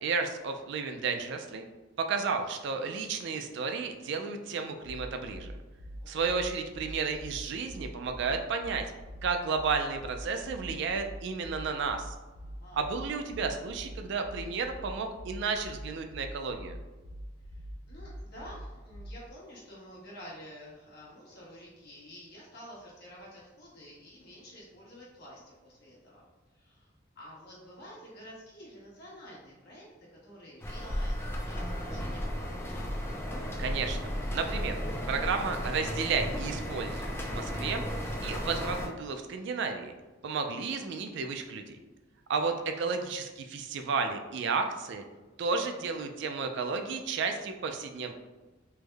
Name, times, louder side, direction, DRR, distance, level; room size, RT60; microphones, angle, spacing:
voice 1, 0.0-1.6 2.0-5.5 6.1-8.8 9.2-12.1 12.7-16.8 33.6-34.7 35.1-37.8 38.2-39.9 40.2-41.8 42.3-45.0 45.4-48.1, right 5 dB, 65° right, 6 dB, 0.3 m, -32 dB
sound 1, 4.8-19.3, equal, 85° left, 0.5 m, -44 dB
voice 2, 12.4-12.8 17.5-26.2 26.5-26.9 27.1-32.8, equal, 55° left, -5 dB, 1.1 m, -50 dB
sound 2, 30.6-38.9, equal, 10° left, 0.3 m, -34 dB
3.4 x 2.1 x 3.3 m, 1.2 s
head